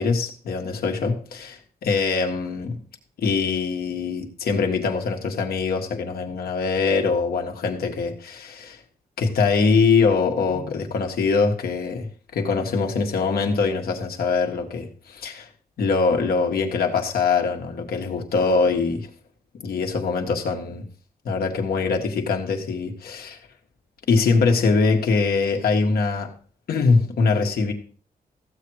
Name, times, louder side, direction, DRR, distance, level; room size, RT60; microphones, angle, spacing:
voice 1, 0.0-2.8 3.2-8.8 9.2-15.5 15.8-19.1 19.6-20.9 21.3-23.4 24.1-26.3 26.7-27.7, left 4 dB, 90° left, 1.9 m, -23 dB
15.0 x 7.7 x 4.9 m
wide cardioid pair, 160°, 15 cm